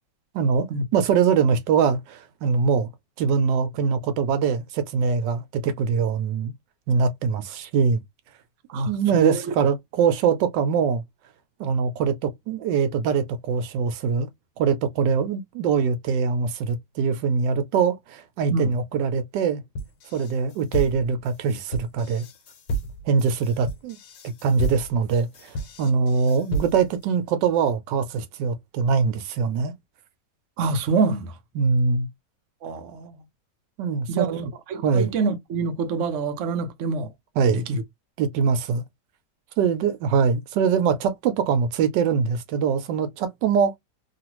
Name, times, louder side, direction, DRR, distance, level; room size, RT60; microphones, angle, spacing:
voice 1, 0.3-0.7 0.9-2.9 3.2-6.5 6.9-8.0 8.9-11.0 11.6-14.3 14.6-19.6 20.1-22.2 23.1-24.0 24.2-29.7 31.6-32.1 33.8-34.5 34.8-35.1 37.4-37.6 38.2-38.8 39.6-43.7, right 6 dB, 85° right, 1.3 m, -23 dB
voice 2, 8.7-9.5 18.5-18.7 30.6-31.4 32.6-33.2 34.1-34.3 34.7-37.1 37.5-37.8, right 4 dB, 60° right, 0.8 m, -26 dB
sound 1, 19.7-27.0, right 2 dB, 90° left, 1.5 m, -32 dB
3.1 x 2.3 x 2.9 m
omnidirectional pair, 1.9 m